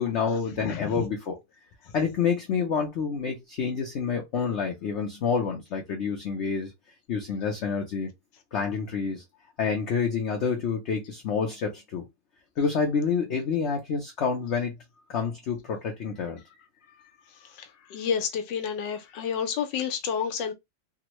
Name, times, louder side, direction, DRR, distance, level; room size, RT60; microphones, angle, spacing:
voice 1, 0.0-1.4 1.9-6.7 7.1-8.1 8.5-9.2 9.6-12.0 12.6-14.7 15.1-16.4, left 6 dB, 65° left, 0.7 m, -28 dB
voice 2, 0.6-1.0 17.6-20.5, left 7 dB, 85° left, 1.3 m, -30 dB
3.5 x 2.1 x 3.0 m
omnidirectional pair, 1.9 m